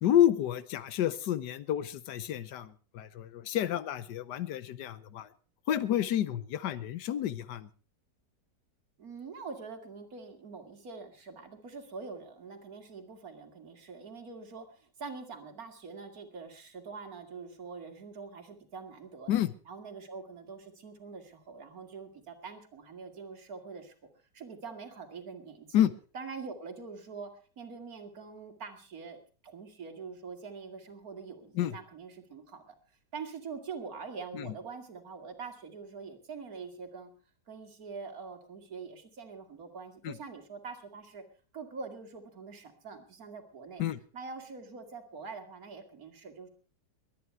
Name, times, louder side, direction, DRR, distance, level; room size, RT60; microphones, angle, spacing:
voice 1, 0.0-5.3 5.7-7.7 19.3-19.5 25.7-25.9 31.5-31.8 34.3-34.5 40.0-40.2 43.8-44.0, left 11 dB, 75° left, 16 dB, 1.4 m, -29 dB
voice 2, 9.0-19.4 19.7-23.9 24.3-25.8 26.1-27.3 27.6-29.2 29.4-32.6 33.1-37.1 37.5-41.2 41.5-43.8 44.1-46.5, right 5 dB, 55° right, 5 dB, 2.4 m, -44 dB
22.0 x 9.6 x 4.5 m, 0.38 s
omnidirectional pair, 1.8 m